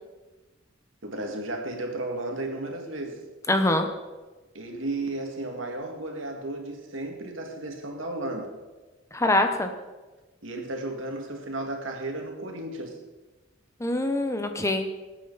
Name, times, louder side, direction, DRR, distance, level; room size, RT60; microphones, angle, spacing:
voice 1, 1.0-3.3 4.5-8.6 10.4-13.0, right 2 dB, 75° right, 2 dB, 2.1 m, -34 dB
voice 2, 3.5-3.9 9.1-9.7 13.8-14.9, left 1 dB, 15° left, 6 dB, 0.8 m, -24 dB
18.5 x 8.7 x 4.1 m, 1.2 s
head